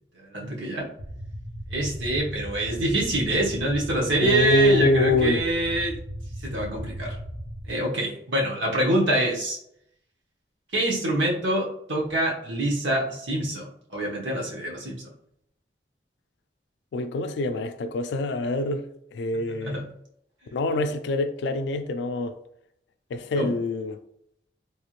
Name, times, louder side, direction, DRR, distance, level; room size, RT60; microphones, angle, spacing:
voice 1, 0.2-0.9 1.7-5.9 6.4-7.1 7.7-9.6 10.7-15.1 19.5-19.8 23.4-23.5, right 1 dB, 90° right, 1.0 m, -25 dB
sound 1, 1.0-7.7, equal, 25° left, 0.9 m, -37 dB
voice 2, 4.2-5.4 16.9-18.8 19.1-19.8 20.5-22.3 23.1-24.0, left 2 dB, 75° left, 0.3 m, -25 dB
3.4 x 2.5 x 3.0 m
head